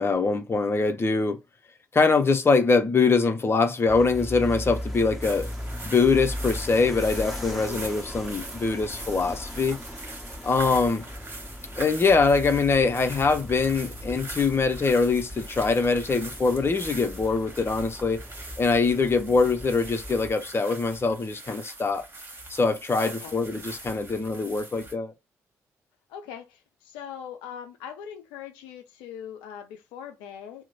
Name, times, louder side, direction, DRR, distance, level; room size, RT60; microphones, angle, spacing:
voice 1, 0.0-1.4 1.9-5.5 5.8-9.8 10.4-11.0 11.7-18.2 18.6-22.0 22.5-25.1, left 4 dB, 30° left, 0.7 m, -23 dB
sound 1, 3.9-20.3, left 1 dB, ahead, 1.4 m, -38 dB
sound 2, 5.2-24.9, right 2 dB, 25° right, 1.5 m, -42 dB
voice 2, 7.4-8.0 10.6-11.1 19.1-19.6 23.0-23.4 26.1-30.7, left 8 dB, 70° left, 0.5 m, -41 dB
2.9 x 2.1 x 4.0 m
figure-of-eight pair, 40°, 8 cm